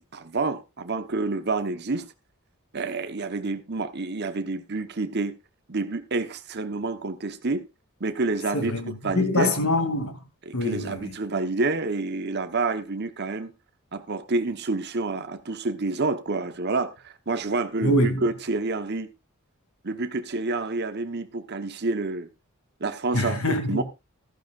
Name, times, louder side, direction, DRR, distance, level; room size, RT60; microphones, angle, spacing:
voice 1, 0.0-2.1 2.7-5.4 5.7-7.7 8.0-8.7 9.0-9.5 10.4-13.5 13.9-19.1 19.8-22.3 22.8-23.4 23.7-23.8, right 3 dB, 50° right, 1.1 m, -28 dB
voice 2, 8.5-10.2 10.5-11.1 17.8-18.3 23.1-23.8, left 1 dB, 75° left, 2.6 m, -25 dB
14.5 x 13.0 x 2.5 m
head